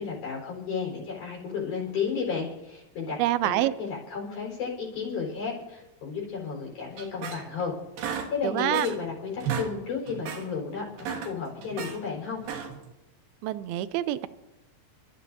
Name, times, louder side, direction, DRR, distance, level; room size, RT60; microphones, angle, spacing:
voice 1, 0.0-3.5 3.8-12.4, left 5 dB, 55° left, -3 dB, 6.0 m, -33 dB
voice 2, 3.2-3.7 8.4-8.9 13.4-14.3, right 14 dB, 85° right, 14 dB, 2.5 m, -26 dB
sound 1, 7.0-7.7 8.0-9.1 9.3-9.7 10.1-10.5 10.9-12.0 12.4-12.9, right 7 dB, 70° right, 3.1 m, -34 dB
28.5 x 13.0 x 2.8 m, 0.97 s
omnidirectional pair, 4.3 m